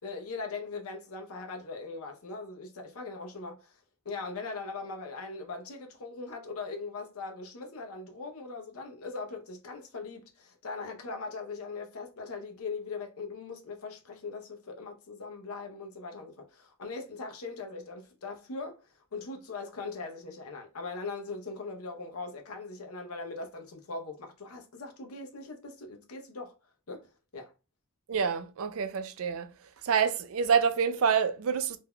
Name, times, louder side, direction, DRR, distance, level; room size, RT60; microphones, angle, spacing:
voice 1, 0.0-3.8 4.0-26.6 26.9-27.5, left 4 dB, 90° left, 0.7 m, -40 dB
voice 2, 28.1-29.5 29.8-31.8, right 6 dB, 75° right, 0.4 m, -27 dB
2.7 x 2.2 x 3.6 m
head